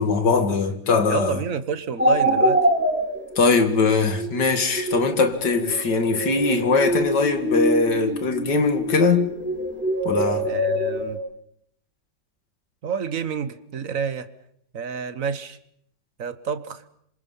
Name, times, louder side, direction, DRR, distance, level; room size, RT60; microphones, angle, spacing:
voice 1, 0.0-1.4 3.4-9.3 10.0-10.4, left 4 dB, 70° left, 2.7 m, -21 dB
voice 2, 1.1-2.6 10.4-11.2 12.8-14.3 14.7-15.6 16.2-16.8, right 6 dB, 50° right, 1.5 m, -29 dB
sound 1, 2.0-11.1, equal, 5° right, 3.6 m, -25 dB
27.5 x 25.0 x 5.6 m
omnidirectional pair, 1.9 m